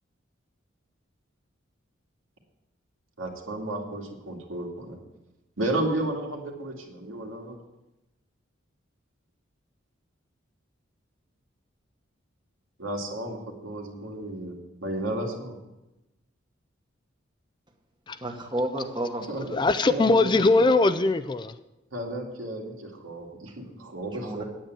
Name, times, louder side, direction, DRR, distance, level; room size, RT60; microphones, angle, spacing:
voice 1, 3.2-5.0 5.6-7.6 12.8-15.6 19.3-19.5 19.8-20.3 21.9-24.4, right 1 dB, 85° right, 2.3 m, -33 dB
voice 2, 18.2-19.6 24.1-24.4, right 1 dB, 20° right, 1.2 m, -31 dB
voice 3, 19.5-21.6, left 3 dB, 20° left, 0.3 m, -21 dB
9.0 x 8.7 x 7.8 m
head